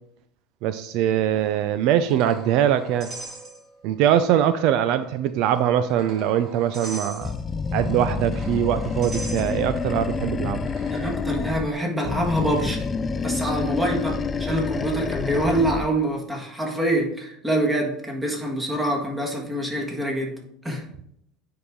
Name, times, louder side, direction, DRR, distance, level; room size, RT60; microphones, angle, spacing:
voice 1, 0.6-3.1 3.8-7.3 7.7-10.6, right 10 dB, 60° right, 11 dB, 0.4 m, -22 dB
sound 1, 1.3-4.0 4.3-4.4 5.3-11.1, right 2 dB, 35° right, 2.9 m, -42 dB
Animal, 7.2-11.7 12.0-15.9, left 5 dB, 20° left, 0.3 m, -28 dB
voice 2, 10.9-12.9 13.2-20.9, right 1 dB, 10° right, 0 dB, 1.7 m, -25 dB
9.2 x 4.8 x 3.7 m, 0.72 s
supercardioid pair, 135°, 0 cm